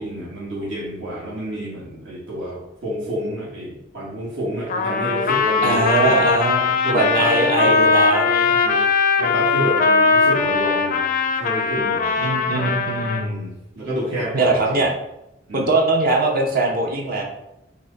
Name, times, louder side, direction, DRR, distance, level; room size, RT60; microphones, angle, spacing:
voice 1, 0.0-6.2 6.8-7.9 8.5-8.9 9.2-11.1 11.4-12.1 13.1-14.8 15.5-15.7, equal, 75° right, -6 dB, 1.5 m, -29 dB
Trumpet, 4.7-13.2, left 4 dB, 45° left, 0.4 m, -20 dB
voice 2, 5.6-6.7 6.9-8.6 12.2-13.4 14.3-14.9 15.5-17.2, right 2 dB, 50° right, 0 dB, 0.8 m, -21 dB
5.9 x 2.2 x 3.9 m, 0.89 s
head